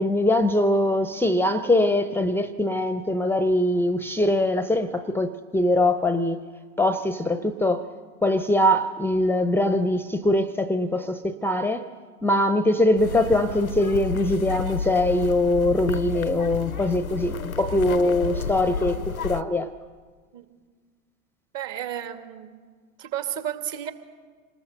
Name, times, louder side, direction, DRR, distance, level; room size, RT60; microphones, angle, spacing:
voice 1, 0.0-6.4 6.8-7.8 8.2-11.9 12.2-19.7, left 1 dB, 5° left, 13 dB, 0.7 m, -22 dB
sound 1, 13.0-19.4, left 6 dB, 90° left, 0.8 m, -31 dB
voice 2, 21.5-22.5 23.0-23.9, right 10 dB, 45° right, 8 dB, 2.3 m, -32 dB
27.0 x 20.0 x 6.7 m, 1.6 s
figure-of-eight pair, 85°, 41 cm